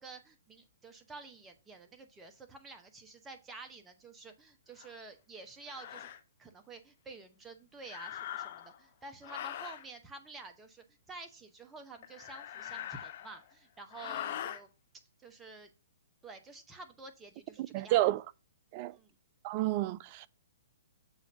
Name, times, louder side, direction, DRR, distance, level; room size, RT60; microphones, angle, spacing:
voice 1, 0.0-6.1 6.4-14.7 15.2-15.7 16.2-18.1 18.9-19.1, right 3 dB, 15° right, 0.9 m, -50 dB
sound 1, 4.8-4.9 5.7-6.2 7.8-8.8 9.2-9.9 12.0-13.5 13.9-14.6, left 11 dB, 50° left, 0.6 m, -42 dB
voice 2, 17.7-18.2 18.7-18.9 19.4-20.3, right 16 dB, 40° right, 0.3 m, -30 dB
7.0 x 2.6 x 5.5 m
hypercardioid pair, 130°, 0 cm